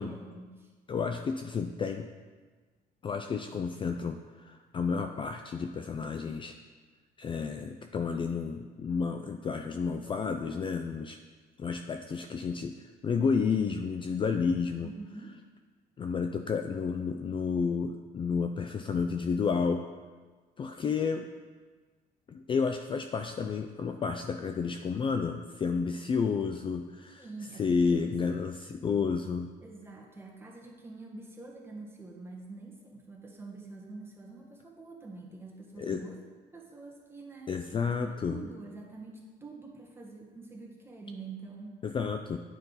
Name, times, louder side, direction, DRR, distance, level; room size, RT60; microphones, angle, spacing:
voice 1, 0.0-0.7 14.8-15.3 27.2-28.1 29.6-36.2 36.5-37.5 37.8-41.8, right 3 dB, 15° right, -1 dB, 1.4 m, -46 dB
voice 2, 0.9-2.1 3.0-6.5 7.2-11.2 11.6-12.7 13.0-14.9 16.0-19.8 20.6-21.3 22.3-27.2 27.6-29.5 35.8-36.0 37.5-38.5 41.8-42.4, left 5 dB, 30° left, 6 dB, 0.4 m, -31 dB
8.9 x 5.5 x 4.0 m, 1.4 s
cardioid pair, 110°, 17 cm